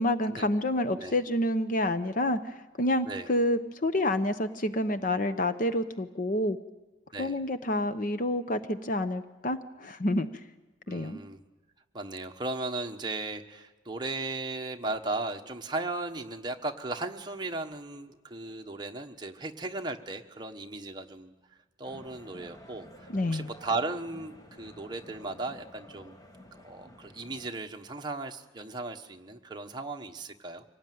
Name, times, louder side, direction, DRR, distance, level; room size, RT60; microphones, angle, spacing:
voice 1, 0.0-6.6 7.2-10.3 10.9-11.2 23.1-23.5, left 1 dB, 45° left, 11 dB, 0.8 m, -28 dB
voice 2, 10.9-11.4 11.9-21.3 21.8-26.2 26.5-30.6, right 2 dB, 25° right, 4 dB, 1.2 m, -36 dB
sound 1, 21.8-27.5, equal, 20° left, 1.6 m, -51 dB
24.5 x 18.0 x 9.3 m, 1.1 s
head